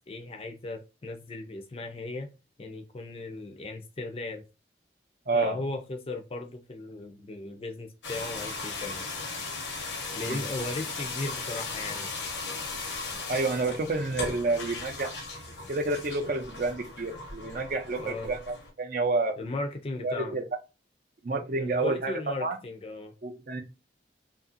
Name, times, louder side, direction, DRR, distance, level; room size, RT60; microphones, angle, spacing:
voice 1, 0.1-2.3 2.6-4.4 5.3-9.1 10.2-12.1 18.0-18.3 19.4-20.4 21.6-23.1, left 2 dB, 30° left, 0.4 m, -37 dB
voice 2, 5.3-5.6 10.2-10.4 13.3-15.2 15.7-19.4 20.0-20.4 21.2-22.6 23.2-23.6, right 3 dB, 50° right, 0.5 m, -29 dB
sound 1, 8.0-18.7, left 3 dB, 85° left, 0.8 m, -37 dB
2.7 x 2.4 x 2.5 m
head